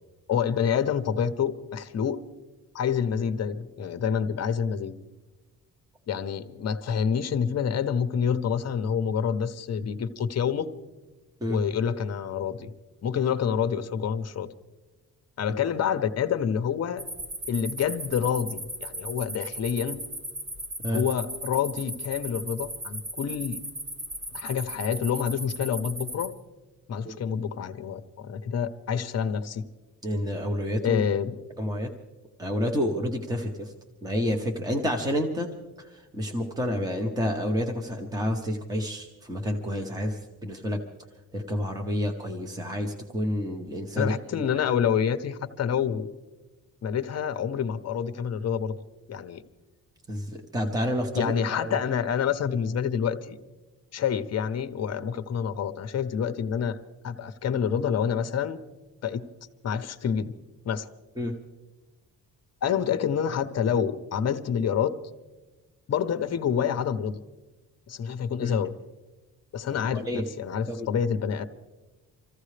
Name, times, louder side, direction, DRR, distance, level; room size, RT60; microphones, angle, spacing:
voice 1, 0.3-2.2 2.7-4.9 6.1-10.7 11.5-12.7 13.0-14.5 15.4-17.0 17.5-20.0 20.9-23.6 24.3-26.3 26.9-29.6 30.8-31.3 44.0-46.1 46.8-48.8 49.1-49.4 51.1-53.4 53.9-56.8 57.0-58.6 59.0-59.2 59.6-60.3 60.6-60.9 62.6-65.0 65.9-67.2 67.9-68.7 69.5-71.4, left 7 dB, 40° left, 10 dB, 0.8 m, -27 dB
sound 1, 17.0-26.3, right 1 dB, 40° right, 4.3 m, -37 dB
voice 2, 30.0-31.0 31.6-31.9 32.4-33.7 34.0-35.5 35.8-40.8 41.3-44.7 50.1-51.8 61.2-61.4 68.4-68.6 69.7-70.2 70.7-70.9, equal, 10° right, 3 dB, 1.0 m, -29 dB
26.5 x 15.0 x 3.3 m, 1.2 s
cardioid pair, 170°, 38 cm